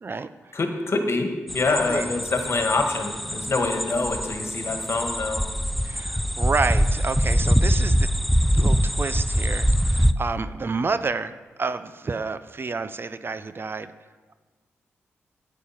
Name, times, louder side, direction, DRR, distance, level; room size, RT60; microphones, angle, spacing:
voice 1, 0.0-0.6 1.9-2.1 5.8-8.1 8.5-11.3 11.6-13.9, right 4 dB, 45° right, 13 dB, 0.5 m, -29 dB
voice 2, 0.5-5.4, left 3 dB, 55° left, 4 dB, 1.7 m, -25 dB
sound 1, 1.5-10.1, equal, ahead, 0.5 m, -23 dB
9.5 x 8.8 x 5.8 m, 1.4 s
supercardioid pair, 45°, 5 cm